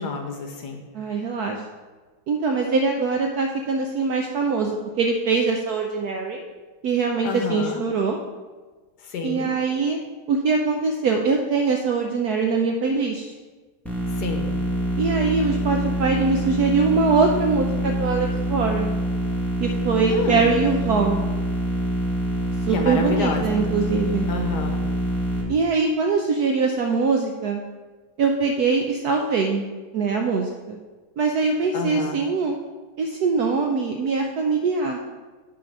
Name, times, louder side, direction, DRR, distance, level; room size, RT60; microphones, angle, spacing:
voice 1, 0.0-0.8 7.2-7.8 9.0-9.5 14.1-14.6 20.1-20.5 22.7-23.4 24.3-24.8 31.7-32.2, left 4 dB, 65° left, 4 dB, 1.2 m, -29 dB
voice 2, 0.9-1.6 2.3-6.4 6.8-8.2 9.2-10.0 10.3-13.3 15.0-18.9 19.6-21.3 22.7-24.3 25.5-27.6 28.2-29.7 29.9-30.8 31.2-32.6 33.0-35.0, right 4 dB, 70° right, 2 dB, 0.9 m, -22 dB
sound 1, 13.8-25.4, equal, ahead, 1.1 m, -25 dB
9.4 x 4.2 x 5.3 m, 1.3 s
omnidirectional pair, 2.2 m